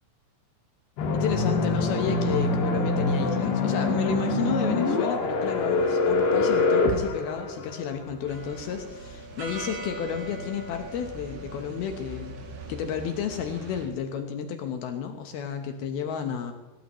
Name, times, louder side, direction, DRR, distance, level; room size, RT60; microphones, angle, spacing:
sound 1, 1.0-8.1, left 3 dB, 65° left, 3.4 m, -25 dB
voice 1, 1.1-12.4 12.7-16.5, left 8 dB, 80° left, 6 dB, 2.2 m, -32 dB
Musical instrument, 1.1-7.9, right 3 dB, ahead, 5.7 m, -40 dB
sound 2, 8.3-13.9, right 2 dB, 65° right, 4.5 m, -40 dB
19.0 x 18.0 x 3.1 m, 1.2 s
omnidirectional pair, 5.9 m